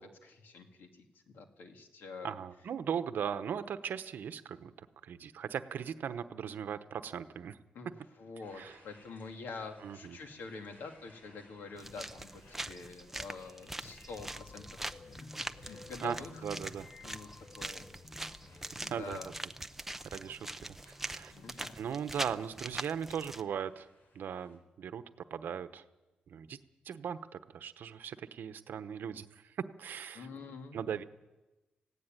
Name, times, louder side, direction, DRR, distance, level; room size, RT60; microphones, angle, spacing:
voice 1, 0.0-2.3 7.7-7.9 8.2-15.3 15.6-16.4 16.8-17.3 17.6-17.9 18.8-19.3 21.3-21.8 30.1-30.8, left 4 dB, 80° left, 4 dB, 2.5 m, -46 dB
voice 2, 2.2-7.6 8.5-8.8 9.8-10.2 16.0-16.9 18.9-19.2 20.0-20.8 21.0-21.3 21.8-23.9 24.1-25.0 25.3-25.8 26.3-26.6 26.8-30.3 30.7-31.0, right 8 dB, 70° right, 11 dB, 1.0 m, -38 dB
sound 1, 8.4-24.6, left 2 dB, 55° left, 4.7 m, -65 dB
sound 2, 11.8-23.4, right 1 dB, 10° right, 0.6 m, -43 dB
sound 3, 13.8-20.7, left 3 dB, 35° left, 0.9 m, -54 dB
18.0 x 16.5 x 9.1 m, 1.1 s
wide cardioid pair, 150°, 3 cm